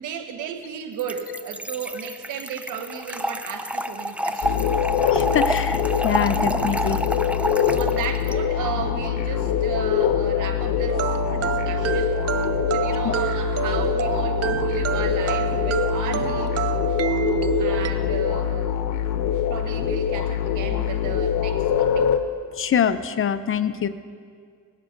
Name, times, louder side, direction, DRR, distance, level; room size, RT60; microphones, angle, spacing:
voice 1, 0.0-4.9 7.3-12.2 12.7-16.6 17.6-18.8 19.5-22.2, right 7 dB, 90° right, 7 dB, 1.4 m, -34 dB
Trickle dribble / Fill (with liquid), 1.0-8.3, equal, 5° right, 0.5 m, -28 dB
sound 1, 4.4-22.2, left 9 dB, 80° left, 1.0 m, -24 dB
voice 2, 5.1-7.0 13.0-13.1 22.6-23.9, left 8 dB, 45° left, 12 dB, 0.7 m, -24 dB
sound 2, 10.9-17.9, right 11 dB, 55° right, 0.7 m, -27 dB
18.0 x 12.0 x 5.2 m, 2.1 s
cardioid pair, 90°, 30 cm